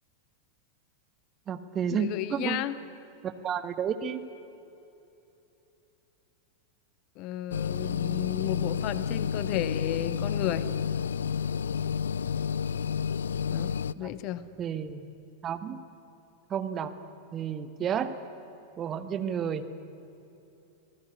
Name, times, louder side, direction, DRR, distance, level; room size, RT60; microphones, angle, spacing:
voice 1, 1.5-2.6 3.2-4.3 14.0-14.1 14.6-15.1 15.4-15.8 16.5-16.9 17.3-18.1 18.8-19.6, right 8 dB, 25° right, 10 dB, 1.6 m, -31 dB
voice 2, 2.0-2.8 7.2-10.7 13.5-14.5, left 13 dB, 40° left, 15 dB, 1.0 m, -33 dB
The Refrigerator, 7.5-13.9, left 7 dB, 65° left, 0.5 m, -30 dB
27.0 x 18.0 x 9.9 m, 3.0 s
figure-of-eight pair, 90°, 0 cm